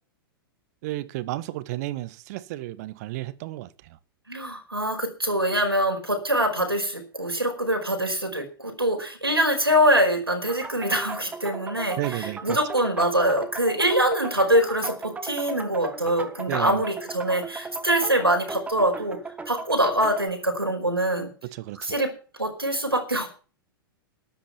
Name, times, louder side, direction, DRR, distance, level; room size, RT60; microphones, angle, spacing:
voice 1, 0.8-4.0 12.0-12.6 16.5-16.8 21.5-21.9, right 16 dB, 45° right, 1.2 m, -32 dB
voice 2, 4.3-19.2 19.5-21.3 21.8-22.1 22.4-23.3, right 1 dB, 90° right, 5.0 m, -24 dB
sound 1, 10.5-20.3, right 4 dB, 10° right, 1.5 m, -37 dB
13.0 x 11.5 x 5.7 m
figure-of-eight pair, 100°, 12 cm